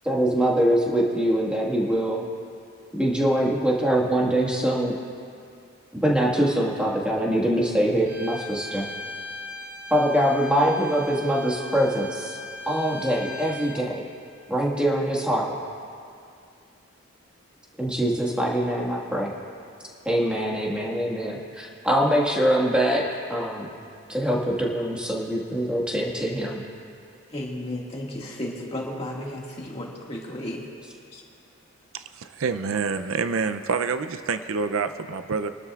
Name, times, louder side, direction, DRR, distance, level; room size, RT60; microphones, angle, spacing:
voice 1, 0.0-2.2 2.9-5.0 5.9-8.9 9.9-12.4 12.7-14.0 14.5-15.5 17.8-19.3 20.0-23.0 23.3-23.7 24.1-26.6, right 1 dB, 5° right, -3 dB, 1.6 m, -23 dB
Bowed string instrument, 8.0-13.8, left 1 dB, 35° right, 1.9 m, -39 dB
voice 2, 27.3-30.7 31.1-31.2, left 1 dB, 25° left, -3 dB, 1.9 m, -33 dB
voice 3, 31.9-35.5, right 5 dB, 75° right, 10 dB, 0.5 m, -27 dB
27.0 x 12.5 x 2.4 m, 2.4 s
head